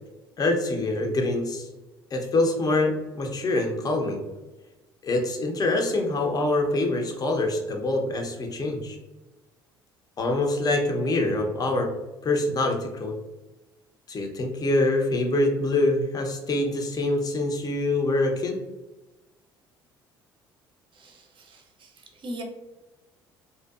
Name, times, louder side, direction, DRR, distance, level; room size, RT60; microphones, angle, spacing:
voice 1, 0.4-1.7 2.1-4.2 5.0-9.0 10.2-11.9 12.2-13.1 14.1-18.6, left 2 dB, 30° left, 3 dB, 0.5 m, -25 dB
voice 2, 20.9-22.4, right 1 dB, 45° right, 2 dB, 0.6 m, -41 dB
2.6 x 2.2 x 2.3 m, 1.1 s
hypercardioid pair, 60°, 12 cm